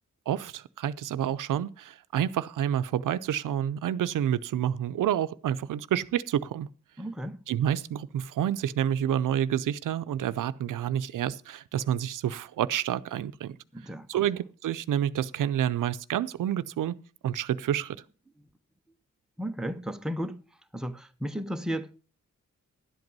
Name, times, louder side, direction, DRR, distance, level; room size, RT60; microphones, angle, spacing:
voice 1, 0.3-6.7 7.5-13.6 14.1-16.9 17.2-18.0, right 10 dB, 90° right, 0.6 m, -29 dB
voice 2, 7.0-7.4 13.7-14.3 19.4-20.4 20.7-22.0, equal, ahead, 0.7 m, -34 dB
11.5 x 8.0 x 5.4 m
wide cardioid pair, 140°, 31 cm